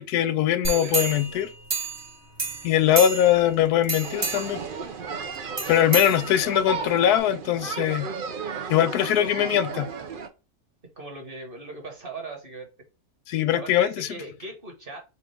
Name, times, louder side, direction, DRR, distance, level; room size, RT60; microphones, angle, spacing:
voice 1, 0.0-1.5 2.6-4.6 5.7-8.1 8.7-9.9 13.3-14.1, left 11 dB, 85° left, 1.1 m, -21 dB
sound 1, 0.6-2.1 2.4-3.5 3.8-4.6 5.6-6.7 7.2-7.3, right 3 dB, 20° right, 0.7 m, -30 dB
voice 2, 0.7-1.4 11.0-12.7 13.5-15.0, right 2 dB, 40° right, 1.3 m, -39 dB
sound 2, 4.0-10.3, right 5 dB, 55° right, 0.6 m, -34 dB
4.3 x 2.4 x 4.6 m
omnidirectional pair, 1.6 m